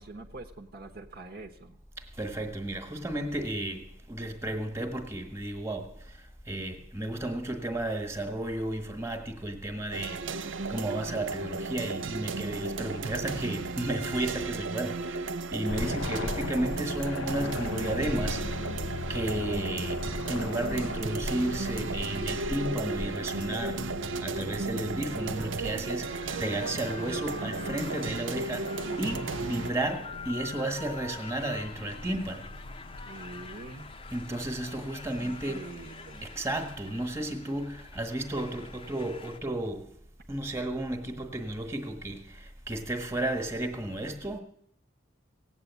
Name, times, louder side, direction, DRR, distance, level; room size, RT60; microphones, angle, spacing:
voice 1, 0.0-1.8 15.9-16.2 33.0-33.9 35.2-36.3, right 2 dB, 50° right, 1.1 m, -45 dB
voice 2, 2.0-18.7 19.1-32.5 34.1-35.6 36.2-39.9 40.3-44.4, right 1 dB, 15° right, 1.4 m, -33 dB
sound 1, 9.9-29.7, right 3 dB, 70° right, 0.7 m, -35 dB
sound 2, 15.7-34.2, left 3 dB, 80° left, 0.8 m, -40 dB
sound 3, 26.0-39.4, left 5 dB, 25° left, 0.7 m, -46 dB
17.5 x 8.2 x 8.2 m
head